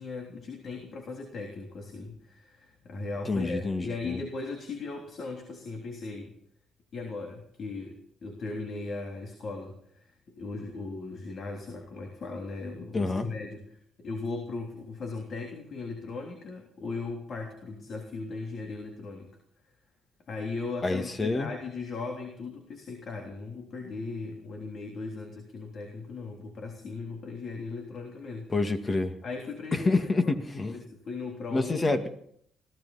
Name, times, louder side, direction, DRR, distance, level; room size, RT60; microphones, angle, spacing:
voice 1, 0.0-6.4 6.9-19.4 20.3-28.5 29.2-30.4 30.7-32.1, left 3 dB, 55° left, 2 dB, 3.2 m, -38 dB
voice 2, 3.3-4.2 12.9-13.3 20.8-21.5 28.5-29.1 29.7-30.8 31.5-32.1, left 3 dB, 30° left, 8 dB, 1.9 m, -27 dB
21.5 x 16.5 x 4.2 m, 0.67 s
cardioid pair, 90°, 0 cm